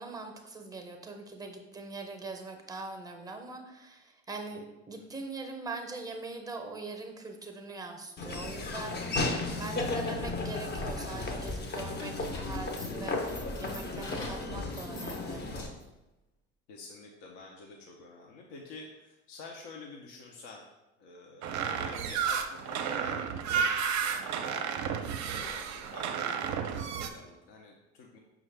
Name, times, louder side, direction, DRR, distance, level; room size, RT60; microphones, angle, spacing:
voice 1, 0.0-9.0 9.6-12.2 12.4-15.4, right 3 dB, 10° right, 5 dB, 0.7 m, -42 dB
Laughter / Walk footsteps, 8.2-15.7, left 2 dB, 30° left, 0.6 m, -34 dB
voice 2, 9.4-10.0 16.7-20.7 21.0-24.8 25.3-28.2, left 3 dB, 70° left, -1 dB, 0.7 m, -49 dB
sound 1, 11.2-16.0, left 2 dB, 90° left, 1.0 m, -47 dB
sound 2, 21.4-27.1, right 7 dB, 50° right, 0.5 m, -32 dB
5.4 x 2.4 x 3.3 m, 0.99 s
hypercardioid pair, 60°, 35 cm